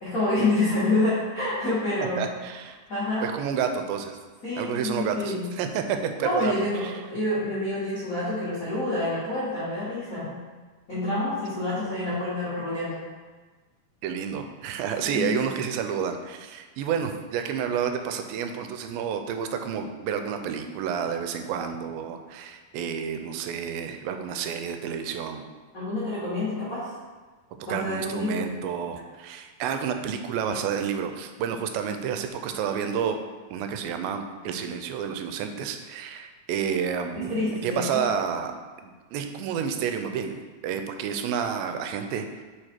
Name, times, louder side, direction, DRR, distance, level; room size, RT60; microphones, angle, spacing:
voice 1, 0.0-2.2 2.9-3.2 4.4-5.5 6.2-10.4 10.9-13.0 15.0-15.5 25.7-26.9 27.7-28.4 37.1-38.0, left 2 dB, 70° left, -11 dB, 0.8 m, -27 dB
voice 2, 2.2-2.8 3.2-4.2 4.6-6.5 6.8-6.9 14.0-25.4 27.7-33.2 33.5-38.5 38.8-42.3, right 7 dB, 90° right, 6 dB, 2.4 m, -30 dB
4.8 x 4.7 x 4.4 m, 1.4 s
omnidirectional pair, 4.1 m